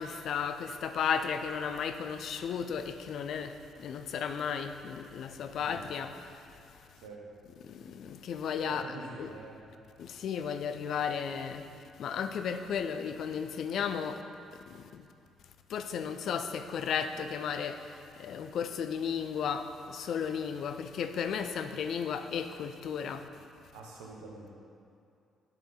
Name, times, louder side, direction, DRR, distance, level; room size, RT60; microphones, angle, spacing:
voice 1, 0.0-3.5 3.8-6.3 7.6-9.3 10.0-11.7 12.0-14.2 14.7-15.0 15.7-23.2, left 7 dB, 55° left, 8 dB, 0.4 m, -34 dB
voice 2, 6.9-7.2 8.7-9.6 23.7-24.5, right 3 dB, 75° right, -1 dB, 0.9 m, -46 dB
8.7 x 4.8 x 3.9 m, 2.5 s
figure-of-eight pair, 45°, 0 cm